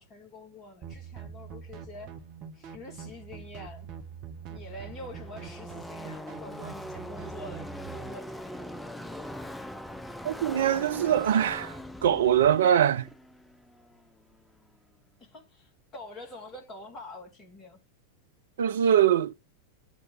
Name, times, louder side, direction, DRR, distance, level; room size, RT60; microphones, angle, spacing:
voice 1, 0.0-2.1 2.5-3.9 4.5-8.6 15.2-17.8, left 1 dB, 25° left, 2.2 m, -46 dB
sound 1, 0.8-8.1, right 7 dB, 40° right, 1.1 m, -44 dB
Car passing by / Race car auto racing, 4.2-14.6, left 1 dB, 5° left, 0.6 m, -42 dB
voice 2, 10.2-13.1 18.6-19.3, right 9 dB, 60° right, 0.5 m, -23 dB
8.4 x 3.1 x 6.4 m
figure-of-eight pair, 90°, 0 cm